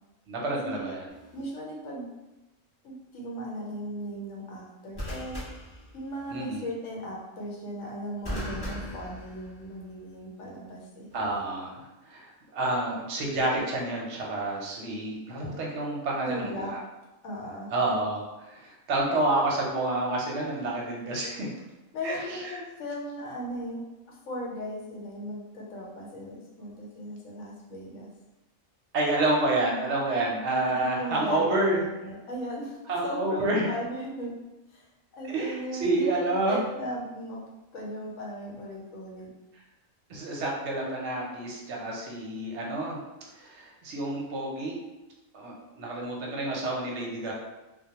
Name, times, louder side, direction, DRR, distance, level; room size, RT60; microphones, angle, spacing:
voice 1, 0.3-1.1 6.3-6.6 11.1-11.8 12.1-16.8 17.7-18.2 18.5-21.5 22.0-22.2 22.4-22.6 28.9-31.8 32.9-33.7 35.3-36.6 40.1-43.0 43.4-44.7 45.3-47.3, right 2 dB, 65° right, -2 dB, 0.8 m, -29 dB
sound 1, 1.1-1.4 4.9-6.4 8.2-9.9 11.1-11.4, equal, 10° left, 1.0 m, -38 dB
voice 2, 1.3-2.1 2.8-5.4 5.9-11.1 16.2-16.7 17.2-17.7 21.9-28.1 30.7-34.4 34.7-34.9 35.1-37.4 37.7-39.3, equal, 75° left, -3 dB, 1.0 m, -37 dB
2.2 x 2.1 x 2.8 m, 1.0 s
omnidirectional pair, 1.4 m